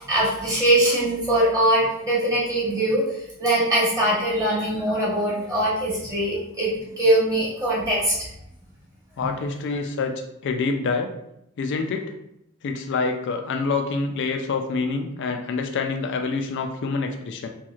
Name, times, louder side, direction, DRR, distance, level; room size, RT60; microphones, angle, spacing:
voice 1, 0.1-8.2 9.2-9.3, right 1 dB, 15° right, -6 dB, 1.0 m, -22 dB
voice 2, 9.2-10.1 10.4-11.1 11.6-12.1 12.6-17.5, left 4 dB, 55° left, 5 dB, 0.3 m, -26 dB
3.1 x 3.1 x 2.4 m, 0.81 s
head